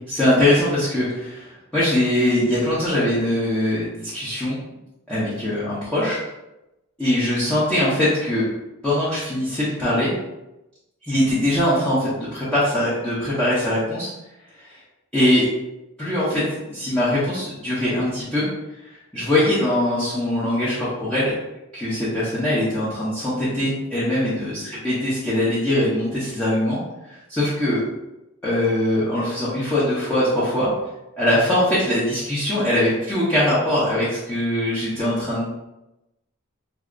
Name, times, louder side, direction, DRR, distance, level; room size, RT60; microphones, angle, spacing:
voice 1, 0.1-4.6 5.1-6.2 7.0-8.5 8.8-10.1 11.0-14.1 14.6-14.8 15.1-15.5 16.0-16.4 16.7-18.4 19.1-21.3 21.7-26.8 27.1-27.8 28.4-30.7 31.2-35.5, left 1 dB, 5° left, -12 dB, 0.8 m, -22 dB
4.7 x 2.0 x 2.4 m, 0.96 s
head